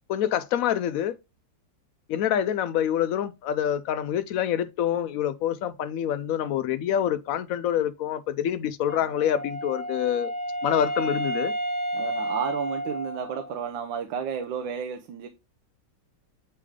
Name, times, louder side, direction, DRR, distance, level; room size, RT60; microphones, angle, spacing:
voice 1, 0.1-1.1 2.1-10.3 10.6-11.5, left 10 dB, 85° left, 0.7 m, -26 dB
Wind instrument woodwind instrument, 8.9-13.7, right 1 dB, 55° right, 1.5 m, -31 dB
voice 2, 11.9-15.3, right 7 dB, 85° right, 1.5 m, -32 dB
8.4 x 3.3 x 3.5 m
omnidirectional pair, 2.0 m